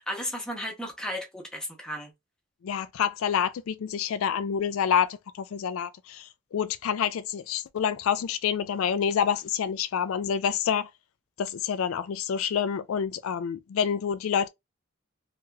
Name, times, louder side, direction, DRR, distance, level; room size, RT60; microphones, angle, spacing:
voice 1, 0.0-2.1, equal, 5° left, 0.8 m, -34 dB
voice 2, 2.6-10.9 11.4-14.5, left 8 dB, 85° left, 0.4 m, -28 dB
3.1 x 2.9 x 2.3 m
head